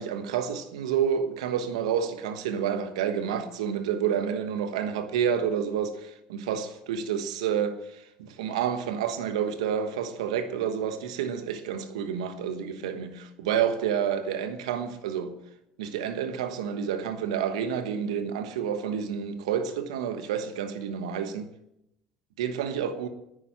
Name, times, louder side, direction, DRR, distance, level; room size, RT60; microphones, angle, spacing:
voice 1, 0.0-15.3 15.8-21.5 22.4-23.1, right 8 dB, 85° right, 1.3 m, -29 dB
10.0 x 9.9 x 7.4 m
hypercardioid pair, 65°, 3 cm